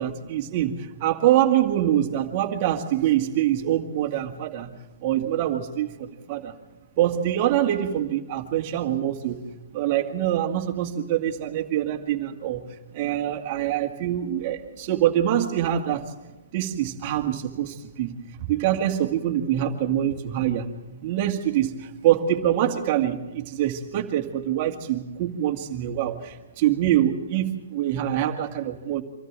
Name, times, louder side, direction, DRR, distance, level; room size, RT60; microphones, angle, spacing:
voice 1, 0.0-6.5 7.0-9.4 9.7-16.2 16.5-20.7 21.0-29.0, right 11 dB, 35° right, 4 dB, 2.1 m, -25 dB
25.5 x 14.0 x 7.5 m, 1.1 s
hypercardioid pair, 150°, 0 cm